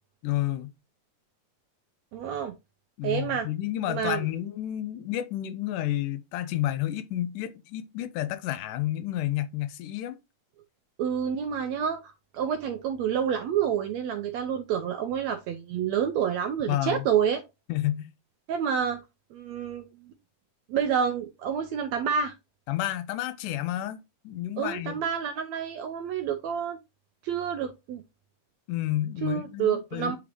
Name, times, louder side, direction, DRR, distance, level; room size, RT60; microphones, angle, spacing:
voice 1, 0.2-0.7 3.0-10.2 16.7-17.0 17.7-18.1 22.7-24.0 24.2-25.0 28.7-30.2, left 13 dB, 80° left, 2.2 m, -30 dB
voice 2, 2.1-2.5 3.0-3.5 3.9-4.3 11.0-17.4 18.5-19.0 19.3-20.1 20.7-22.3 24.6-26.8 27.2-28.0 29.2-30.2, right 8 dB, 75° right, 1.6 m, -28 dB
8.2 x 3.8 x 3.2 m
omnidirectional pair, 3.7 m